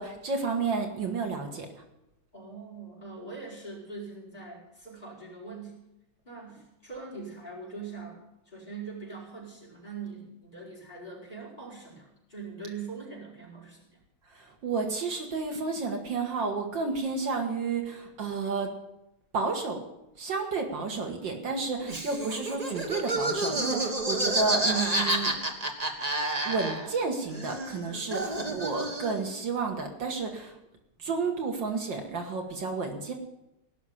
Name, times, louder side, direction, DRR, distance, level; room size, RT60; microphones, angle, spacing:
voice 1, 0.0-1.7 14.3-18.7 19.3-19.8 20.2-25.3 26.4-30.6 31.0-33.1, right 4 dB, 70° right, 3 dB, 2.2 m, -31 dB
voice 2, 2.3-5.8 6.2-8.2 8.5-13.8 28.4-28.9, right 4 dB, 20° left, -5 dB, 5.4 m, -42 dB
Laughter, 21.9-27.1 27.3-29.3, right 1 dB, 20° right, 1.4 m, -30 dB
17.5 x 6.3 x 9.8 m, 0.88 s
omnidirectional pair, 2.2 m